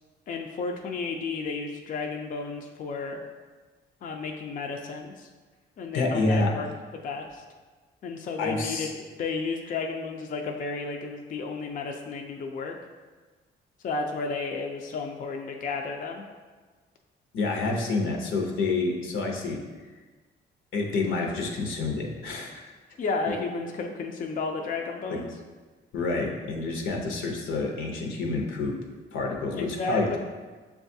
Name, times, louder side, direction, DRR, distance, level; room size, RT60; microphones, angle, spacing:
voice 1, 0.3-3.2 4.0-5.3 5.8-6.7 7.0-7.4 8.0-12.8 13.8-16.2 23.0-25.3 29.5-30.2, left 4 dB, 45° left, 3 dB, 0.4 m, -32 dB
voice 2, 5.9-6.6 8.4-8.9 17.3-19.6 20.7-22.7 25.1-25.2 25.9-28.7 29.1-30.2, left 3 dB, 80° left, 1 dB, 0.7 m, -28 dB
6.8 x 2.3 x 2.6 m, 1.4 s
cardioid pair, 90°, 20 cm